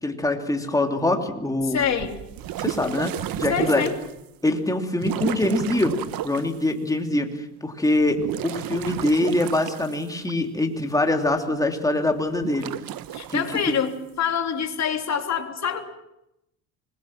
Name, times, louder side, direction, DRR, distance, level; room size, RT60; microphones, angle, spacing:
voice 1, 0.0-1.8 2.6-3.8 4.4-6.0 6.2-7.3 7.6-12.7 13.3-13.6, left 2 dB, 10° left, 4 dB, 3.1 m, -24 dB
sound 1, 1.6-4.2 4.9-6.5 8.0-10.3 12.3-13.7, right 12 dB, 55° right, 1.1 m, -32 dB
voice 2, 1.7-2.2 3.5-3.9 13.1-15.8, left 7 dB, 40° left, 5 dB, 3.4 m, -26 dB
25.5 x 21.5 x 7.6 m, 0.85 s
cardioid pair, 110°, 42 cm